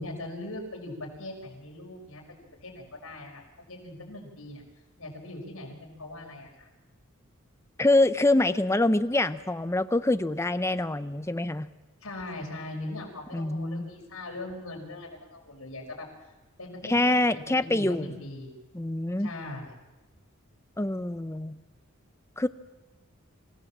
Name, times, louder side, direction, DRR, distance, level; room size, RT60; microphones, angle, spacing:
voice 1, 0.0-3.4 3.7-4.6 5.0-6.7 12.0-16.3 16.6-17.1 17.6-18.5 19.2-19.7, left 2 dB, 75° left, 0 dB, 5.7 m, -40 dB
voice 2, 7.8-11.7 13.3-13.9 16.8-18.1 18.7-19.3 20.8-21.6 22.4-22.5, left 2 dB, 15° left, 11 dB, 0.7 m, -25 dB
26.0 x 16.5 x 7.4 m, 1.1 s
head